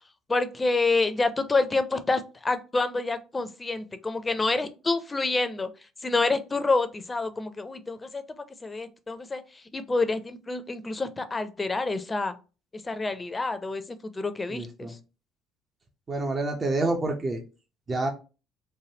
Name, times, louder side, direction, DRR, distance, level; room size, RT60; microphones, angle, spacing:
voice 1, 0.3-5.7 6.0-8.2 8.6-12.3 12.8-13.8 14.1-15.0, left 3 dB, 25° left, 10 dB, 0.5 m, -27 dB
voice 2, 14.5-14.9 16.1-17.4 17.9-18.1, right 2 dB, 40° right, 3 dB, 0.6 m, -28 dB
3.3 x 2.2 x 2.7 m, 0.32 s
hypercardioid pair, 55°, 0 cm